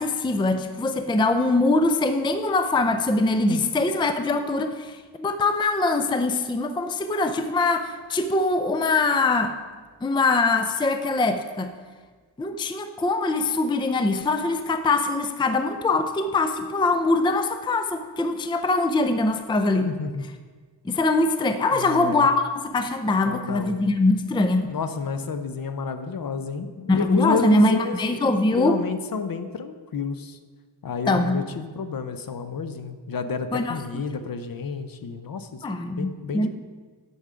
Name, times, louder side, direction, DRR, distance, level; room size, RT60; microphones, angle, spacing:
voice 1, 0.0-9.5 10.0-11.7 12.4-19.9 20.8-24.7 26.9-28.8 31.1-31.4 33.5-33.8 35.6-36.5, left 2 dB, 10° left, 9 dB, 0.4 m, -23 dB
voice 2, 19.8-20.2 21.7-22.3 23.3-24.0 24.7-28.0 28.5-30.4 30.8-35.6 36.0-36.5, left 5 dB, 50° left, 9 dB, 0.7 m, -30 dB
10.0 x 7.0 x 5.0 m, 1.5 s
wide cardioid pair, 130°, 43 cm